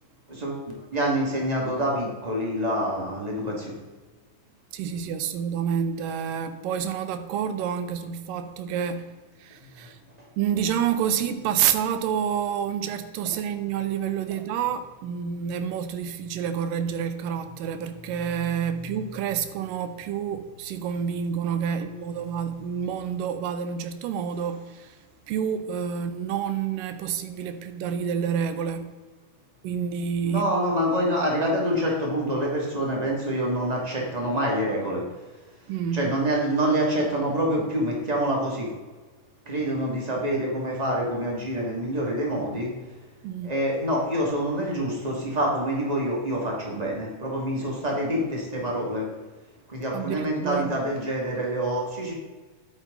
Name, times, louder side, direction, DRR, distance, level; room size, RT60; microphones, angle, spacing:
voice 1, 0.3-3.7 9.7-9.9 10.2-10.3 30.2-35.0 35.9-38.7 39.5-42.7 43.4-49.1 49.7-52.1, equal, 15° right, 1.7 m, -26 dB
voice 2, 4.7-9.1 9.4-10.0 10.4-25.0 25.3-28.9 29.6-30.4 35.7-36.1 43.2-43.6 49.9-50.8, right 8 dB, 85° right, 2.4 m, -28 dB
10.0 x 8.5 x 3.9 m
omnidirectional pair, 3.8 m